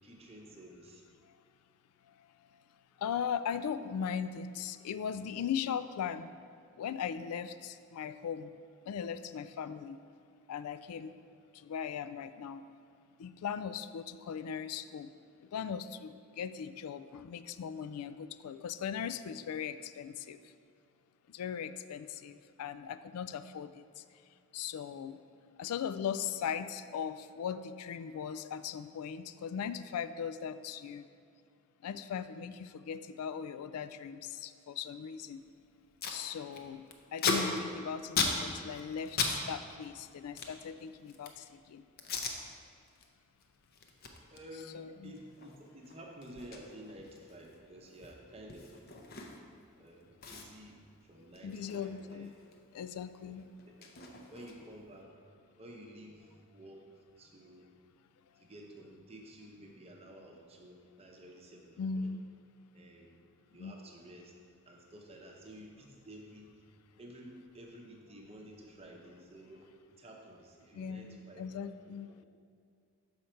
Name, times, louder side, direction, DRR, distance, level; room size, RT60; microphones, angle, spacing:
voice 1, 0.0-1.0 44.3-48.8 49.8-52.3 53.2-53.9 54.3-56.9 57.2-57.7 58.4-62.1 62.7-63.1 63.5-64.3 64.6-66.5 67.0-69.7 70.0-71.7, right 1 dB, 25° right, 0 dB, 0.8 m, -52 dB
voice 2, 3.0-6.3 6.8-8.5 8.9-10.0 10.5-11.1 11.6-12.6 13.2-15.1 15.4-20.4 21.3-24.0 24.5-25.2 25.6-31.0 31.8-35.4 36.1-36.9 37.1-41.8 44.7-45.1 51.4-52.3 52.7-53.5 61.8-62.2 63.6-63.7 70.7-72.1, left 7 dB, 85° left, 12 dB, 0.3 m, -39 dB
Packing tape duct tape, 35.5-35.6 35.7-36.2 36.5-39.4 39.6-41.5 42.0-42.4 42.8-43.1 43.4-49.6 49.9-50.0 50.2-52.6 52.9-54.8, left 4 dB, 45° left, 0.6 m, -38 dB
6.3 x 5.6 x 4.4 m, 2.3 s
head